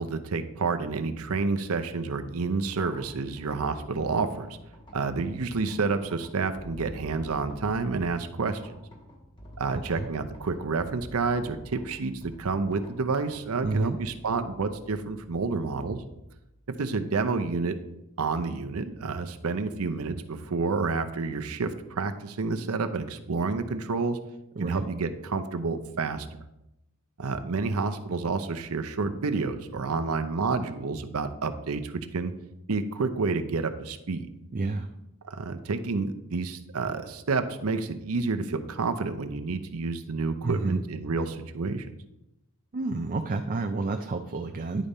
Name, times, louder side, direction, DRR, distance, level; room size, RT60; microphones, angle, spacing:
voice 1, 0.0-4.6 4.9-8.7 9.6-16.0 16.8-17.8 18.2-24.2 24.6-26.3 27.2-32.3 32.7-34.3 35.2-41.9, right 4 dB, 75° right, 9 dB, 0.7 m, -29 dB
sound 1, 2.7-17.0, equal, 25° left, 1.4 m, -48 dB
voice 2, 9.7-10.1 13.6-14.0 24.6-24.9 34.5-34.9 40.4-40.8 42.7-44.9, right 3 dB, 40° right, 5 dB, 0.4 m, -29 dB
10.0 x 5.2 x 4.2 m, 0.89 s
head